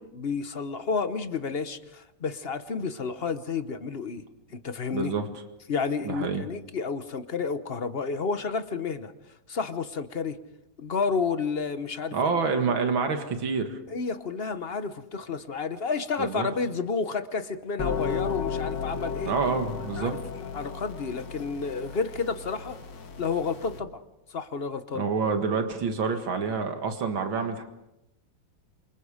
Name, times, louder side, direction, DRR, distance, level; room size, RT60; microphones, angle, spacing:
voice 1, 0.0-4.2 4.5-5.1 5.7-9.1 9.5-10.4 10.8-12.3 13.9-19.3 20.0-20.2 20.5-22.8 23.2-24.0 24.3-25.0, left 5 dB, 40° left, 11 dB, 0.9 m, -30 dB
voice 2, 4.9-5.3 6.0-6.4 12.1-13.8 16.2-16.5 19.3-20.2 24.9-27.6, right 5 dB, 85° right, 6 dB, 2.5 m, -27 dB
sound 1, 17.8-23.8, left 6 dB, 65° left, 2.3 m, -34 dB
28.0 x 25.0 x 5.0 m, 0.88 s
omnidirectional pair, 2.1 m